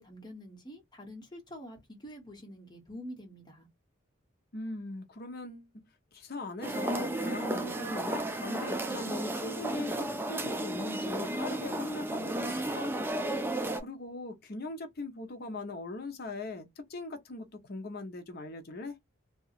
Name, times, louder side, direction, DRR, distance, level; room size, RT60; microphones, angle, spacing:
voice 1, 0.0-3.7, equal, 20° left, 1.1 m, -46 dB
voice 2, 4.5-5.7 6.1-12.9 13.8-19.0, left 2 dB, 50° left, 0.7 m, -40 dB
sound 1, 6.6-13.8, right 1 dB, 10° right, 0.4 m, -33 dB
2.8 x 2.3 x 2.4 m
head